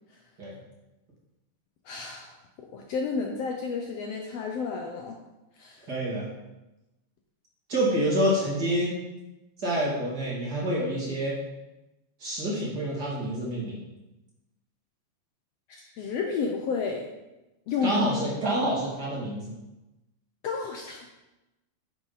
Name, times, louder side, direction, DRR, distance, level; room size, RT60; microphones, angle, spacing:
voice 1, 1.8-2.4 2.7-5.1 5.6-5.9 15.7-17.1 17.7-18.3 20.4-21.1, left 5 dB, 70° left, 1 dB, 1.7 m, -31 dB
voice 2, 5.9-6.3 7.7-8.9 9.6-11.4 12.2-13.8 17.8-19.5, equal, 35° right, -6 dB, 3.0 m, -27 dB
9.4 x 7.8 x 4.1 m, 1.0 s
omnidirectional pair, 3.4 m